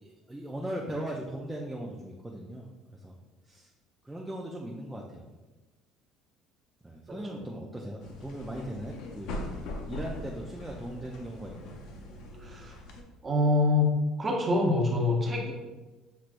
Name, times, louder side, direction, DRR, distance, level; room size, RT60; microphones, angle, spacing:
voice 1, 0.0-3.2 3.4-3.7 4.0-5.3 6.8-9.3 9.9-11.8, right 1 dB, 5° right, -3 dB, 0.4 m, -39 dB
sound 1, 8.0-13.0, left 1 dB, 65° left, 0.6 m, -41 dB
voice 2, 12.4-12.7 13.2-13.9 14.2-15.5, left 2 dB, 20° right, 0 dB, 0.8 m, -25 dB
6.0 x 3.1 x 2.5 m, 1.2 s
cardioid pair, 135°, 0 cm